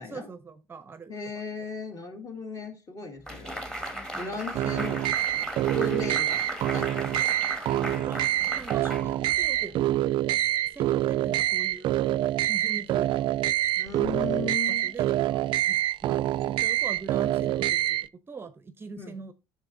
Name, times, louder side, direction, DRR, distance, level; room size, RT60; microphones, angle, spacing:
voice 1, 0.0-1.1 4.1-4.3 7.6-9.9 10.6-13.3 14.7-19.3, right 4 dB, 25° right, 0.7 m, -42 dB
voice 2, 1.1-3.6 4.2-7.2 13.8-14.9 19.0-19.2, left 4 dB, 35° left, 2.1 m, -37 dB
sound 1, 3.3-9.7, right 1 dB, 5° left, 1.5 m, -37 dB
sound 2, 4.5-18.1, right 14 dB, 55° right, 0.3 m, -26 dB
8.7 x 6.6 x 2.6 m
cardioid pair, 115°, 10 cm